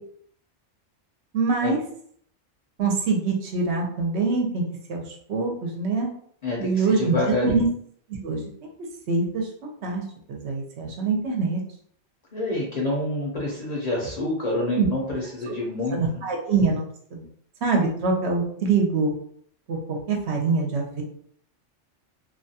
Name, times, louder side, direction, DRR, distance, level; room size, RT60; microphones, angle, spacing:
voice 1, 1.3-1.8 2.8-4.6 4.9-6.1 6.6-7.2 7.4-7.7 8.1-8.7 9.1-10.0 10.3-11.6 14.7-14.9 15.9-17.2 17.6-19.1 19.7-21.0, right 4 dB, 70° right, 0 dB, 0.9 m, -24 dB
voice 2, 6.4-7.6 12.3-16.2, left 1 dB, 45° left, -4 dB, 0.6 m, -27 dB
2.5 x 2.2 x 2.7 m, 0.62 s
omnidirectional pair, 1.2 m